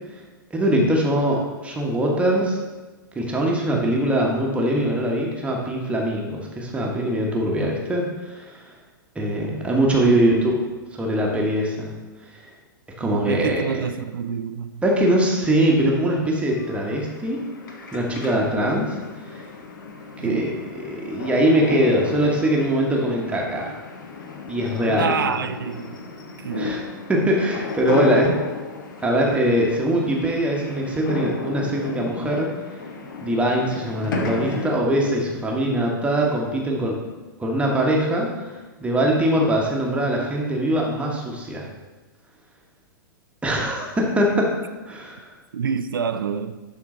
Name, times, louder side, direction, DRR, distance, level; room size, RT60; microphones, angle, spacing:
voice 1, 0.5-2.6 3.1-8.6 9.1-10.5 11.0-11.9 12.3-12.4 13.0-13.8 14.8-17.4 17.9-18.9 19.3-19.4 20.2-20.5 20.8-23.8 24.5-25.1 26.6-26.8 27.1-28.3 29.0-32.5 33.2-37.0 37.4-38.5 38.8-41.7 43.4-44.6 44.9-45.2, right 1 dB, 10° right, 1.2 m, -22 dB
voice 2, 10.0-10.7 13.0-14.8 20.2-20.5 25.0-26.0 26.4-26.9 28.3-28.4 45.5-46.6, right 6 dB, 75° right, 0.4 m, -28 dB
sound 1, 16.6-34.8, left 4 dB, 60° left, 0.9 m, -33 dB
11.0 x 3.9 x 3.8 m
figure-of-eight pair, 105°, 11 cm